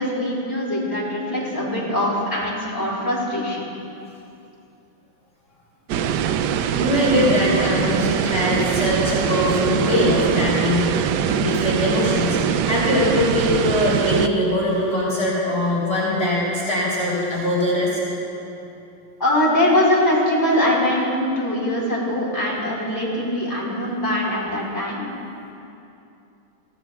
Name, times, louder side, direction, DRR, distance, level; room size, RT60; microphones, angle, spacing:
voice 1, 0.0-3.7 19.2-25.0, left 1 dB, 10° left, -7 dB, 3.8 m, -22 dB
sound 1, 5.9-14.3, right 8 dB, 75° right, 1.1 m, -22 dB
voice 2, 6.7-18.0, left 1 dB, 30° left, -6 dB, 3.6 m, -22 dB
25.0 x 16.0 x 2.4 m, 2.8 s
omnidirectional pair, 2.1 m